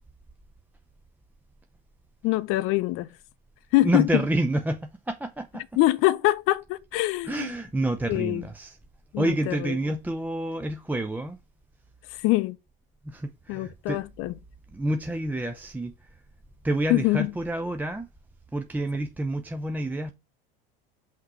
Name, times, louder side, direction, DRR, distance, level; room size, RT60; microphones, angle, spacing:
voice 1, 2.2-3.1 3.7-4.2 5.8-7.6 8.1-8.4 9.1-9.8 12.1-12.6 13.5-14.3 16.9-17.3, left 18 dB, 45° left, 0.6 m, -24 dB
voice 2, 3.8-5.6 7.3-8.8 9.2-11.4 13.0-14.0 14.7-15.9 16.6-18.1 18.5-20.1, right 1 dB, 5° right, 0.5 m, -28 dB
5.7 x 3.1 x 5.5 m
hypercardioid pair, 80°, 30 cm